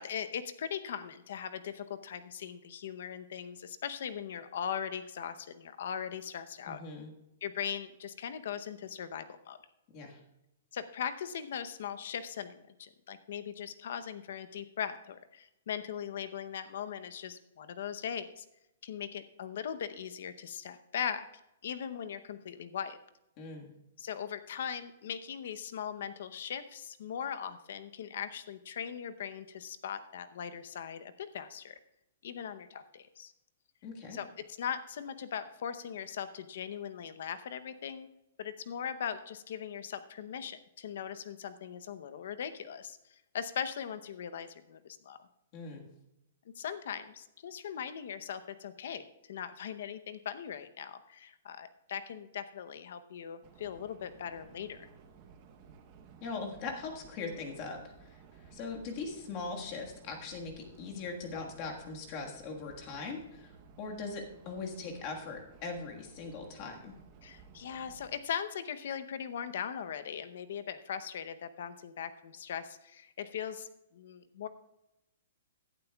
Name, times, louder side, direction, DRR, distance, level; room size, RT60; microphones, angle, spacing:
voice 1, 0.0-6.8 7.4-9.6 10.7-18.4 18.8-21.3 21.6-23.0 24.0-31.8 32.2-33.3 34.1-34.3 34.6-38.1 38.4-45.2 46.6-54.9 67.2-74.5, left 8 dB, 50° left, 12 dB, 0.7 m, -39 dB
voice 2, 6.7-7.1 9.9-10.2 23.4-23.7 33.8-34.2 45.5-45.8 56.2-66.9, left 4 dB, 25° left, 2 dB, 1.5 m, -41 dB
sound 1, 53.4-68.2, right 5 dB, 20° right, 0.8 m, -56 dB
16.0 x 11.5 x 2.3 m, 0.89 s
hypercardioid pair, 180°, 0 cm